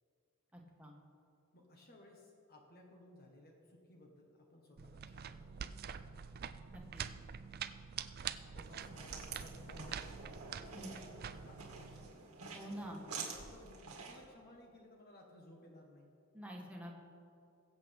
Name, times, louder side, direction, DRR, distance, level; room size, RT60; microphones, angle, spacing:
voice 1, 0.5-0.9 6.7-7.0 10.7-10.9 12.5-13.0 16.3-16.9, equal, 5° right, -1 dB, 1.5 m, -47 dB
voice 2, 1.5-6.1 8.3-12.3 12.8-16.1, left 1 dB, 45° left, 0 dB, 1.4 m, -59 dB
sound 1, 4.8-12.1, right 7 dB, 45° right, 0.4 m, -46 dB
sound 2, 8.6-14.3, right 5 dB, 85° right, 2.0 m, -49 dB
21.5 x 7.9 x 3.6 m, 2.5 s
head